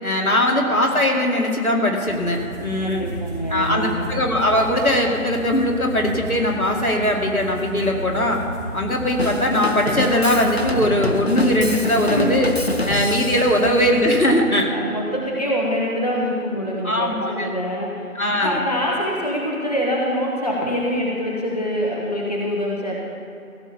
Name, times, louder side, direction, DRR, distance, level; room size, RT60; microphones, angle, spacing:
voice 1, 0.0-3.1 3.5-8.4 8.7-12.5 12.9-14.7 16.8-17.5 18.1-18.6, left 1 dB, 75° left, 1 dB, 2.4 m, -20 dB
sound 1, 2.1-14.1, right 1 dB, 10° left, 2.7 m, -34 dB
voice 2, 2.8-4.1 12.1-12.3 14.7-18.1 18.4-22.9, equal, 25° left, -3 dB, 1.0 m, -25 dB
Drum kit / Drum, 9.2-13.6, left 1 dB, 50° left, 0.5 m, -27 dB
15.5 x 6.9 x 7.0 m, 2.7 s
figure-of-eight pair, 165°, 43 cm